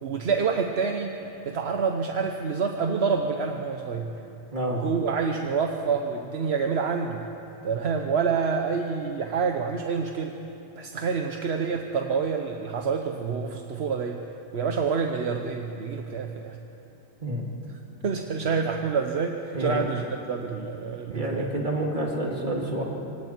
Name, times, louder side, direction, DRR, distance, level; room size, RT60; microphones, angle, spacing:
voice 1, 0.0-1.2 1.4-4.1 4.7-7.2 7.6-10.4 10.8-14.2 14.5-16.6 18.0-21.5, right 5 dB, 75° right, 4 dB, 1.2 m, -27 dB
voice 2, 19.5-19.8 21.1-22.8, right 1 dB, 45° right, -1 dB, 2.9 m, -28 dB
26.5 x 26.0 x 4.5 m, 2.9 s
omnidirectional pair, 1.1 m